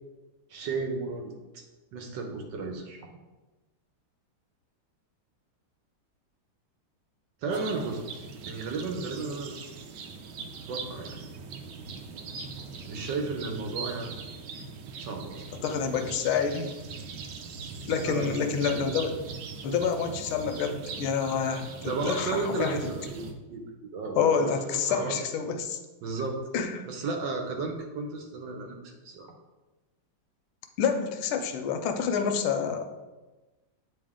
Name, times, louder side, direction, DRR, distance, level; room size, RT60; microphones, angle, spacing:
voice 1, 0.5-1.6 1.9-3.1 7.4-9.5 10.7-11.2 12.9-14.2 15.0-15.4 18.0-18.3 21.8-23.2 23.5-23.6 23.9-25.2 26.0-26.4 26.9-29.3, right 3 dB, 70° right, 3 dB, 1.4 m, -33 dB
sound 1, 7.5-23.3, right 5 dB, 90° right, 1.5 m, -40 dB
voice 2, 15.6-16.7 17.9-19.2 19.6-22.8 24.2-25.8 26.5-26.8 30.8-32.9, left 6 dB, 85° left, 6 dB, 1.5 m, -28 dB
8.4 x 3.3 x 3.6 m, 1.1 s
omnidirectional pair, 2.3 m